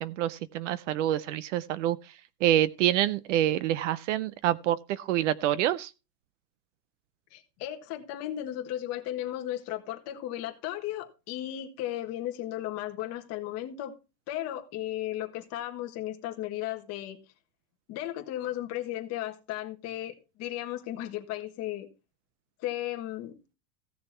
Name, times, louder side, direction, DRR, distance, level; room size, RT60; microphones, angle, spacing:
voice 1, 0.0-2.1 2.4-5.9, right 12 dB, 50° right, 0.5 m, -27 dB
voice 2, 7.3-13.9 14.3-17.2 17.9-21.9 22.6-23.3, left 13 dB, 30° left, 1.6 m, -35 dB
15.5 x 6.7 x 4.4 m
supercardioid pair, 170°, 47 cm